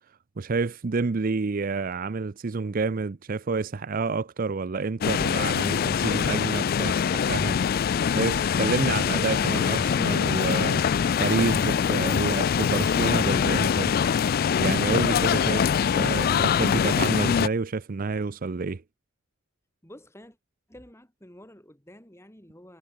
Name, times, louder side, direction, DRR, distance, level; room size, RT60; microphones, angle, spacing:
voice 1, 0.4-7.6 8.2-10.8 11.2-14.0 14.6-15.7 15.9-18.8, right 4 dB, 40° right, 0.5 m, -29 dB
sound 1, 5.0-17.5, left 7 dB, 45° left, 0.3 m, -23 dB
voice 2, 19.8-20.4 20.7-22.8, left 1 dB, 15° left, 4.5 m, -49 dB
head